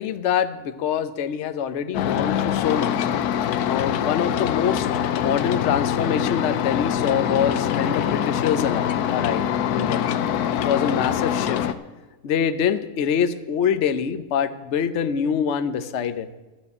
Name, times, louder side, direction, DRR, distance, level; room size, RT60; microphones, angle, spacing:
voice 1, 0.0-2.9 3.6-4.9 5.2-9.4 9.7-10.1 10.6-11.7 12.2-16.3, left 8 dB, 55° left, 11 dB, 0.9 m, -25 dB
sound 1, 1.9-11.7, left 9 dB, 75° left, 1.2 m, -24 dB
12.5 x 6.8 x 9.7 m, 1.2 s
omnidirectional pair, 1.7 m